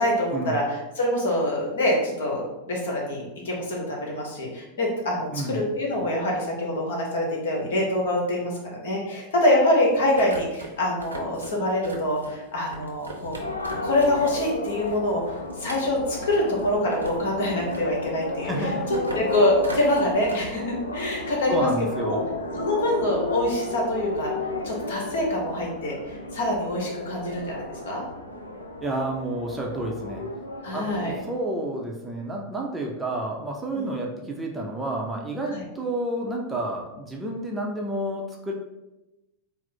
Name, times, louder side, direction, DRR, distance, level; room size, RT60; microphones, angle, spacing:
voice 1, 0.0-13.3 13.8-18.5 19.1-21.7 22.0-22.2 22.6-24.3 24.6-28.0 30.6-31.2 33.7-33.9 35.5-35.6, left 1 dB, 60° left, -1 dB, 1.1 m, -25 dB
sound 1, 9.9-14.4 14.7-17.3 17.6-18.5 18.9-20.3, right 2 dB, 80° right, 0.7 m, -41 dB
sound 2, 13.4-31.4, left 2 dB, 75° left, 0.4 m, -33 dB
voice 2, 18.4-18.9 21.5-22.3 28.8-30.3 30.7-38.5, right 1 dB, 10° right, -1 dB, 0.6 m, -30 dB
4.1 x 2.0 x 4.4 m, 0.97 s
figure-of-eight pair, 90°, 0 cm